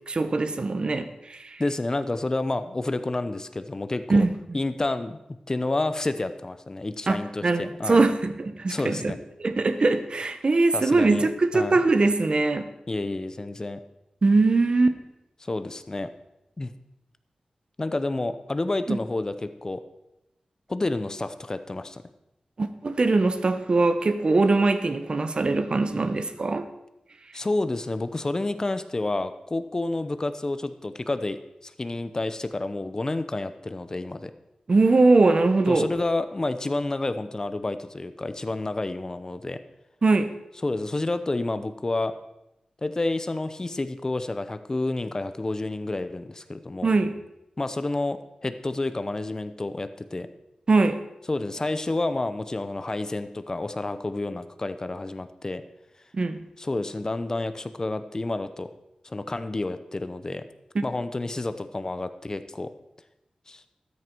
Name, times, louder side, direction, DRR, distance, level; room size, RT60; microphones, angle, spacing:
voice 1, 0.1-1.6 4.1-4.3 7.1-7.2 7.4-9.1 9.4-12.7 14.2-15.0 18.9-19.0 22.6-26.7 34.7-35.9 40.0-40.3 46.8-47.2 50.7-51.0 56.1-56.4, right 3 dB, 50° right, 10 dB, 0.9 m, -21 dB
voice 2, 1.6-4.2 4.5-5.2 5.5-8.0 8.7-9.2 10.7-11.2 11.5-11.8 12.9-13.8 15.4-16.1 16.6-16.7 17.8-19.8 20.7-22.0 27.3-31.4 31.6-34.3 35.7-39.6 40.6-42.1 42.8-46.9 47.6-50.3 51.3-55.6 56.6-58.7 59.0-60.4 60.8-62.7 63.5-63.6, left 2 dB, 30° left, 11 dB, 0.8 m, -29 dB
13.5 x 9.7 x 4.6 m, 0.90 s
wide cardioid pair, 105°, 2 cm